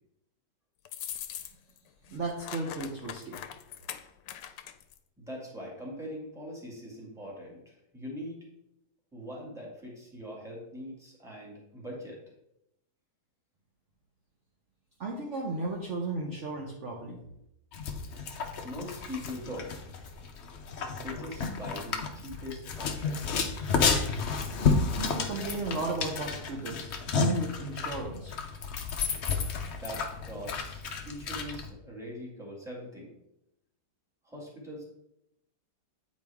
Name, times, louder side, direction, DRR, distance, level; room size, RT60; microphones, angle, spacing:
sound 1, 0.9-1.8 2.1-5.0, left 10 dB, 90° left, 1.3 m, -41 dB
voice 1, 2.1-3.4 15.0-17.2 25.0-28.3, right 2 dB, 50° right, -1 dB, 1.1 m, -34 dB
voice 2, 5.2-8.4 9.1-12.2 18.6-20.0 21.0-23.2 29.8-33.1 34.2-34.8, equal, ahead, -4 dB, 1.9 m, -42 dB
sound 2, 17.7-31.7, left 5 dB, 55° left, 0.8 m, -32 dB
8.6 x 4.6 x 3.5 m, 0.82 s
omnidirectional pair, 1.9 m